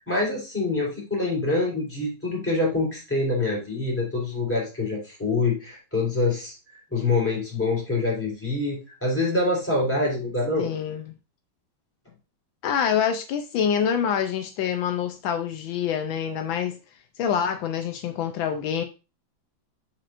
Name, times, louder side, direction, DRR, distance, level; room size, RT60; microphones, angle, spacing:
voice 1, 0.0-6.6 6.9-10.7, left 2 dB, 5° left, 3.5 m, -25 dB
voice 2, 10.6-11.1 12.6-16.8 17.2-18.8, left 8 dB, 80° left, 1.4 m, -26 dB
7.7 x 5.9 x 2.5 m
omnidirectional pair, 2.2 m